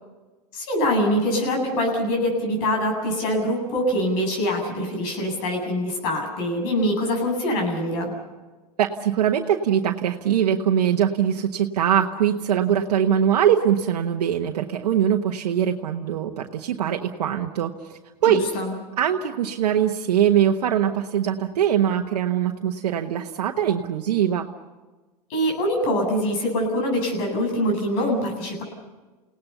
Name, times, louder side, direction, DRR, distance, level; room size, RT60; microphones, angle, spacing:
voice 1, 0.5-8.1 18.3-18.7 25.3-28.6, equal, 60° left, 2 dB, 7.9 m, -24 dB
voice 2, 8.8-18.4 19.0-24.5, right 9 dB, 80° right, 3 dB, 1.2 m, -22 dB
30.0 x 18.0 x 7.0 m, 1.2 s
hypercardioid pair, 100°, 20 cm